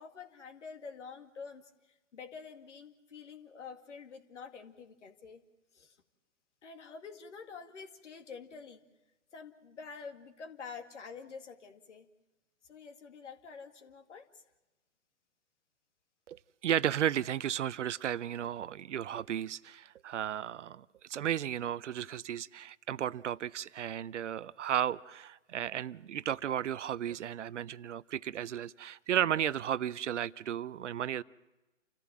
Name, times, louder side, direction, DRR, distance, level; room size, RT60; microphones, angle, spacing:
voice 1, 0.0-5.4 5.7-6.0 6.6-8.8 9.3-12.1 12.6-14.4, left 5 dB, 65° left, 2.2 m, -48 dB
voice 2, 16.3-31.2, right 10 dB, 65° right, 0.6 m, -34 dB
28.5 x 14.5 x 7.5 m
hypercardioid pair, 130°, 39 cm